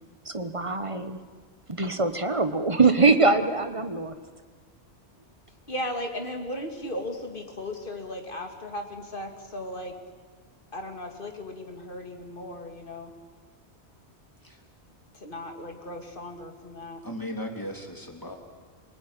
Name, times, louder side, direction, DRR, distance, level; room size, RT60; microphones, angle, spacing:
voice 1, 0.2-1.2 1.7-4.2, right 3 dB, 30° right, 9 dB, 1.3 m, -23 dB
voice 2, 5.7-9.9 10.7-13.1 15.2-17.0, left 1 dB, 50° left, 4 dB, 2.7 m, -36 dB
voice 3, 17.0-18.4, equal, 20° left, 2 dB, 3.2 m, -36 dB
27.0 x 20.0 x 9.9 m, 1.5 s
omnidirectional pair, 1.1 m